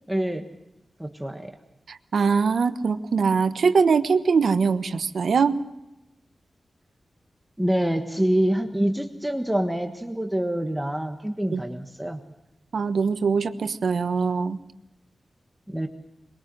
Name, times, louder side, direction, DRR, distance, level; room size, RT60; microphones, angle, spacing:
voice 1, 0.1-0.5 1.0-1.6 7.6-12.2 15.7-15.9, right 1 dB, 5° right, 4 dB, 1.5 m, -26 dB
voice 2, 1.9-5.6 11.5-11.6 12.7-14.6, right 5 dB, 85° right, 10 dB, 1.2 m, -22 dB
22.5 x 22.5 x 7.7 m, 0.91 s
wide cardioid pair, 155°, 0 cm